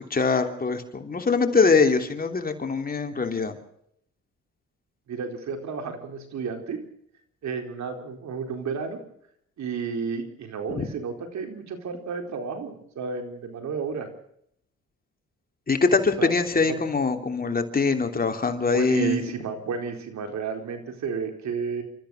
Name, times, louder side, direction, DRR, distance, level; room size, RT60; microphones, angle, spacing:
voice 1, 0.0-3.5 10.8-10.9 15.7-19.2, left 4 dB, 30° left, 5 dB, 3.0 m, -23 dB
voice 2, 5.1-6.8 7.4-9.0 9.6-14.1 16.2-16.3 16.7-16.8 18.7-21.8, right 5 dB, 65° right, 5 dB, 4.4 m, -32 dB
29.5 x 14.0 x 6.5 m, 0.71 s
cardioid pair, 90°, 30 cm